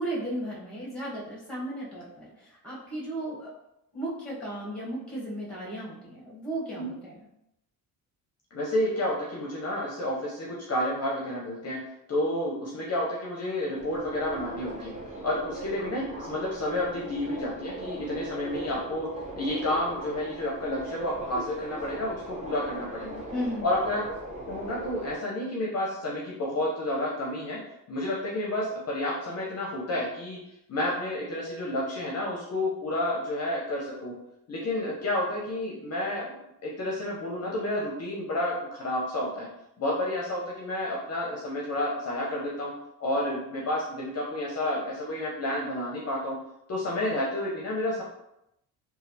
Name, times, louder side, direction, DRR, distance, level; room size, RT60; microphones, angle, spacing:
voice 1, 0.0-3.5 3.9-7.2 23.3-23.7, right 1 dB, 5° left, -6 dB, 1.1 m, -35 dB
voice 2, 8.5-11.8 12.1-14.9 15.2-19.1 19.4-23.2 23.6-27.6 27.9-30.4 30.7-34.1 34.5-36.4 36.6-39.5 39.8-42.7 43.0-46.4 46.7-48.0, left 1 dB, 45° left, -3 dB, 0.6 m, -30 dB
Subway metro underground, 13.8-25.2, right 2 dB, 20° right, 0.8 m, -40 dB
3.1 x 2.4 x 2.6 m, 0.83 s
cardioid pair, 115°, 37 cm